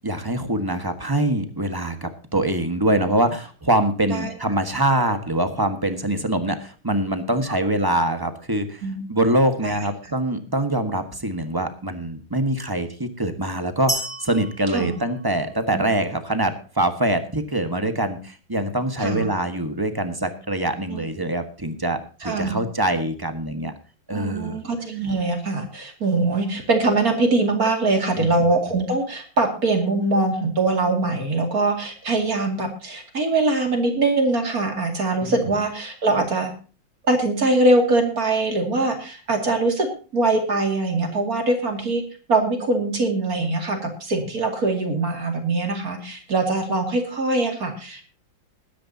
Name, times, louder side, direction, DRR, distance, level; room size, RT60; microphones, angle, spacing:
voice 1, 0.0-8.8 9.1-23.7 24.1-24.6 28.2-28.5 35.2-35.3, right 1 dB, 15° right, 8 dB, 1.2 m, -24 dB
sound 1, 13.9-15.8, right 2 dB, 5° left, 3.2 m, -32 dB
voice 2, 22.2-22.6 24.1-36.5 37.1-39.9 40.1-42.0 42.3-48.0, right 2 dB, 45° right, 4 dB, 2.8 m, -22 dB
21.0 x 10.0 x 2.8 m, 0.36 s
omnidirectional pair, 2.2 m